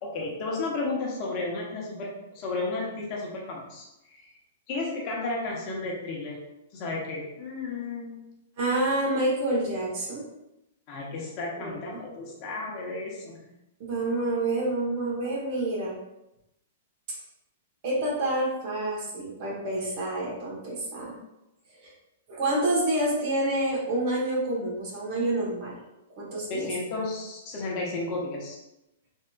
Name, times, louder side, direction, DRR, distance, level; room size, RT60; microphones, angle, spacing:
voice 1, 0.0-3.9 4.1-4.2 4.7-6.4 6.7-8.2 10.9-13.4 26.5-28.6, left 3 dB, 40° left, -3 dB, 1.0 m, -33 dB
voice 2, 8.6-10.2 11.6-12.0 13.8-16.0 17.8-21.2 21.8-21.9 22.3-25.8 26.2-26.7, right 1 dB, 50° right, -4 dB, 1.4 m, -28 dB
3.6 x 2.7 x 2.4 m, 0.91 s
hypercardioid pair, 110°, 0 cm